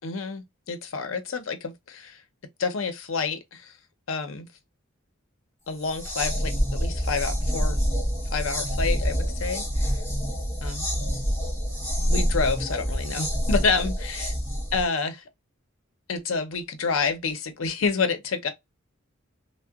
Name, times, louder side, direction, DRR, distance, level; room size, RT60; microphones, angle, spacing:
voice 1, 0.0-2.2 2.6-3.7 4.1-4.5 5.7-7.8 8.3-10.0 10.6-10.8 12.1-14.3 14.7-15.2 16.1-18.5, left 4 dB, 90° left, 0.6 m, -28 dB
sound 1, 5.8-14.8, equal, 15° left, 1.2 m, -27 dB
2.7 x 2.1 x 2.3 m
head